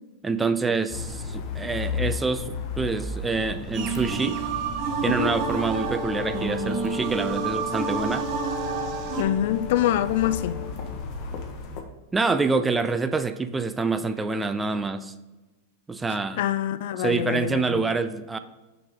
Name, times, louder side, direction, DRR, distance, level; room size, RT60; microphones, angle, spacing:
voice 1, 0.2-4.4 5.0-8.2 12.1-15.1 15.9-16.4 17.0-18.4, right 4 dB, 15° right, 0.4 m, -26 dB
sound 1, 0.9-11.8, left 4 dB, 45° left, 1.0 m, -35 dB
sound 2, 3.7-9.2, right 7 dB, 45° right, 0.8 m, -29 dB
Brass instrument, 5.0-11.0, left 9 dB, 10° left, 1.3 m, -35 dB
voice 2, 9.2-10.6 16.4-17.8, left 11 dB, 65° left, 0.4 m, -25 dB
5.8 x 4.9 x 3.6 m
hypercardioid pair, 110°, 0 cm